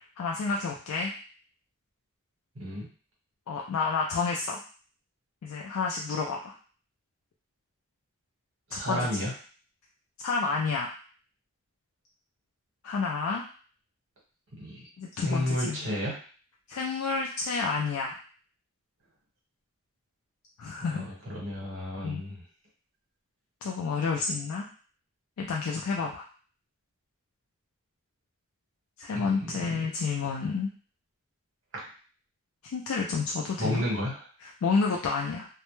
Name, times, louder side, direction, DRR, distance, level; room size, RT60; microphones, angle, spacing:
voice 1, 0.2-1.1 3.5-4.6 5.4-6.5 8.7-9.3 10.2-10.9 12.8-13.4 15.0-15.9 16.7-18.2 20.6-21.1 22.0-22.2 23.6-24.7 25.4-26.3 29.0-30.7 32.7-33.8 34.4-35.5, left 4 dB, 75° left, -1 dB, 0.3 m, -30 dB
voice 2, 2.6-2.9 8.7-9.3 14.6-14.9 15.1-16.2 20.9-22.4 29.1-29.9 33.6-34.2, equal, 55° right, -4 dB, 1.0 m, -32 dB
2.1 x 2.1 x 3.0 m, 0.40 s
head